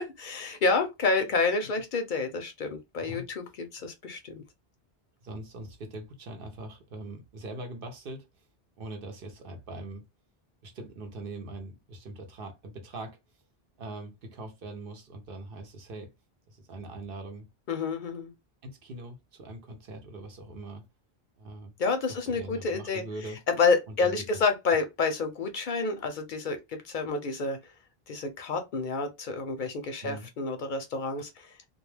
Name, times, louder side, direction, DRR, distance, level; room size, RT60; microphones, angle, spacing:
voice 1, 0.2-4.4 17.7-18.3 21.8-23.0 23.5-27.6 28.1-31.5, left 4 dB, 60° left, 0.6 m, -29 dB
voice 2, 5.2-8.3 8.8-10.0 10.6-13.2 13.8-16.1 16.5-17.5 18.6-20.8 21.4-21.7 22.1-23.4 23.9-24.4 30.0-30.3, right 2 dB, 65° right, 0.9 m, -42 dB
2.3 x 2.2 x 3.1 m
omnidirectional pair, 1.0 m